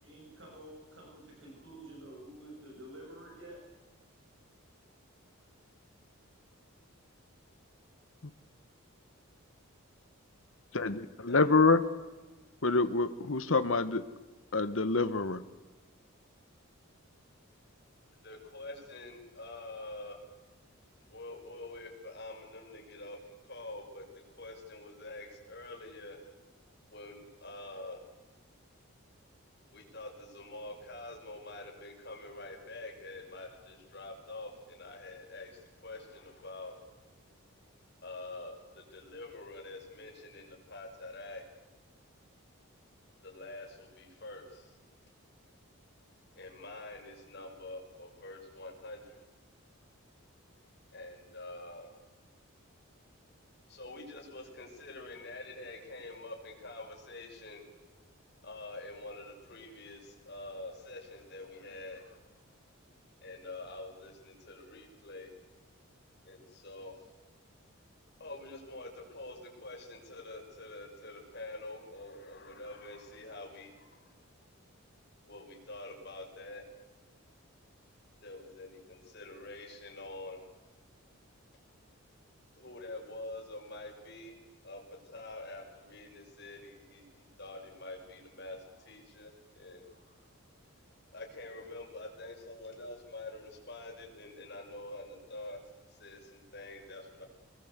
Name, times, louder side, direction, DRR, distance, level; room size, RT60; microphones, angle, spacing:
voice 1, 0.0-3.6, right 1 dB, 60° right, -1 dB, 7.4 m, -49 dB
voice 2, 10.7-11.8 12.6-14.0 14.5-15.4, left 3 dB, 65° left, 11 dB, 1.2 m, -26 dB
voice 3, 18.2-20.2 21.1-24.1 24.4-26.2 26.9-28.0 29.7-36.8 38.0-41.4 43.2-44.7 46.3-49.2 50.9-51.9 53.7-57.6 58.4-62.2 63.2-65.3 66.2-67.0 68.2-74.1 75.3-76.6 78.2-80.4 82.6-84.4 84.6-90.3 91.1-95.6 95.9-97.2, left 2 dB, 50° left, 1 dB, 6.1 m, -46 dB
23.5 x 20.5 x 8.2 m, 1.2 s
head